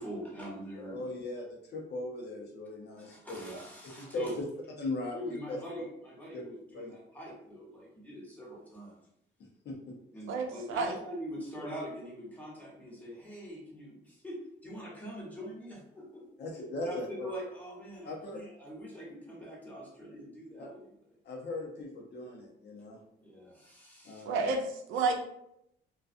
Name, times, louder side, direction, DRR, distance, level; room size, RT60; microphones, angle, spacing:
voice 1, 0.0-1.0 3.0-4.3 5.1-9.0 10.1-16.2 16.8-20.9 23.2-24.3, equal, 10° left, -5 dB, 1.1 m, -43 dB
voice 2, 0.8-3.4 3.8-4.3 4.8-5.6 6.3-6.4 6.7-6.9 9.4-10.0 16.4-17.3 18.0-18.4 20.6-20.7 21.2-23.0 24.0-24.5, left 2 dB, 55° left, 0 dB, 0.7 m, -39 dB
voice 3, 10.3-11.0 24.3-25.1, right 4 dB, 80° right, 3 dB, 0.5 m, -30 dB
2.4 x 2.3 x 2.5 m, 0.76 s
cardioid pair, 90°, 20 cm